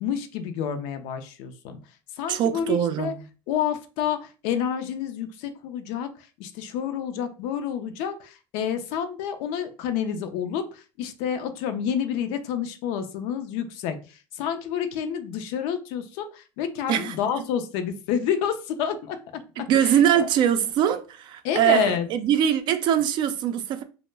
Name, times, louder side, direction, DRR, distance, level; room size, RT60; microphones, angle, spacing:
voice 1, 0.0-1.8 2.1-3.1 3.5-19.2 19.6-20.3 21.4-22.1, left 8 dB, 75° left, 0.4 m, -29 dB
voice 2, 2.3-3.2 16.9-17.2 19.7-23.8, right 10 dB, 50° right, 0.4 m, -22 dB
2.1 x 2.0 x 3.2 m
supercardioid pair, 115°, 10 cm